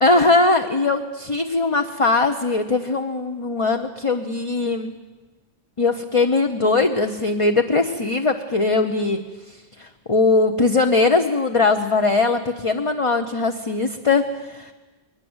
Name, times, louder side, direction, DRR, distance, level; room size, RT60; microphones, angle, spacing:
voice 1, 0.0-4.9 5.8-9.2 9.8-14.7, left 3 dB, 30° left, 5 dB, 0.9 m, -20 dB
21.5 x 20.0 x 8.1 m, 1.2 s
omnidirectional pair, 1.2 m